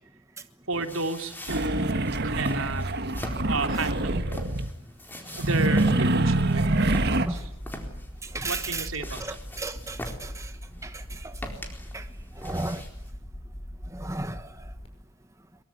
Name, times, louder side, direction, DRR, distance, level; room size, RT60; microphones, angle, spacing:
sound 1, 0.7-13.1, left 1 dB, 10° left, 4.1 m, -43 dB
voice 1, 0.7-2.9 3.4-4.2 5.4-7.0 7.3-7.5 8.4-9.2, right 3 dB, 75° right, 3.3 m, -32 dB
sound 2, 1.5-4.7 5.4-7.3, right 2 dB, 50° right, 1.8 m, -25 dB
sound 3, 6.8-14.9, equal, 30° left, 5.4 m, -41 dB
voice 2, 7.0-7.4 8.2-8.9 9.2-10.5 10.8-11.4 11.9-12.1 12.4-12.8 13.9-14.7, right 2 dB, 15° right, 1.2 m, -35 dB
23.0 x 23.0 x 9.6 m
head